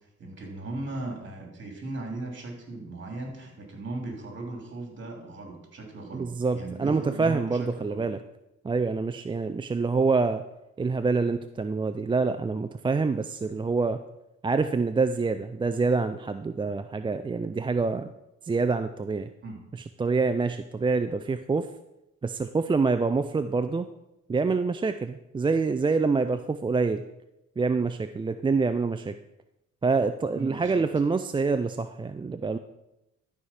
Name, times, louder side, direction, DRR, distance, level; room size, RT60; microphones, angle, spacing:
voice 1, 0.2-8.0 19.4-19.6 30.3-30.9, right 2 dB, 40° right, 2 dB, 3.1 m, -37 dB
voice 2, 6.1-8.2 8.6-10.4 10.8-14.0 14.4-18.1 18.4-19.3 19.7-21.7 22.2-23.9 24.3-27.0 27.6-29.2 29.8-32.6, right 4 dB, 15° right, 9 dB, 0.4 m, -26 dB
12.5 x 4.9 x 5.7 m, 0.90 s
cardioid pair, 90°, 30 cm